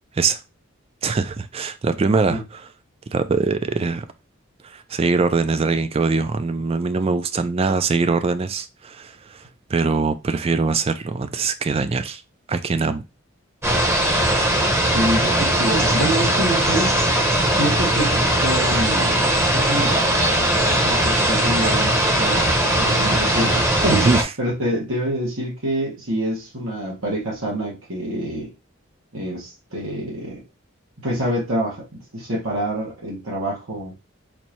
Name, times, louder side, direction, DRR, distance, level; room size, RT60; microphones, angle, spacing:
voice 1, 1.0-2.6 3.1-4.1 4.7-9.4 9.7-12.2 12.5-13.0 23.9-24.3, right 4 dB, 30° right, 0.3 m, -22 dB
sound 1, 13.6-24.2, right 1 dB, 15° right, 0.8 m, -19 dB
voice 2, 14.9-16.9 17.5-22.4 22.8-24.1 24.4-28.5 29.1-30.4 31.0-31.9 32.1-33.9, right 1 dB, 90° right, 1.6 m, -26 dB
4.3 x 2.7 x 2.9 m
head